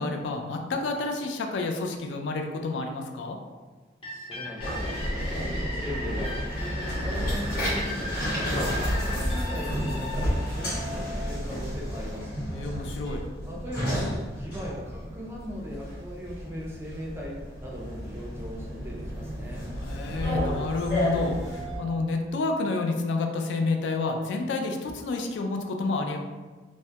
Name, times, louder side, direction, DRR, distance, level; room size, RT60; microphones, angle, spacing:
voice 1, 0.0-3.4 12.5-13.2 19.7-26.2, left 3 dB, 70° left, 3 dB, 0.3 m, -29 dB
sound 1, 4.0-11.6, left 1 dB, 30° left, 0.6 m, -38 dB
voice 2, 4.1-5.0 5.3-8.6 8.9-12.3 13.5-19.7, equal, 15° right, -3 dB, 0.4 m, -39 dB
sound 2, 4.6-21.8, equal, 55° left, 1.0 m, -31 dB
2.2 x 2.1 x 2.7 m, 1.3 s
head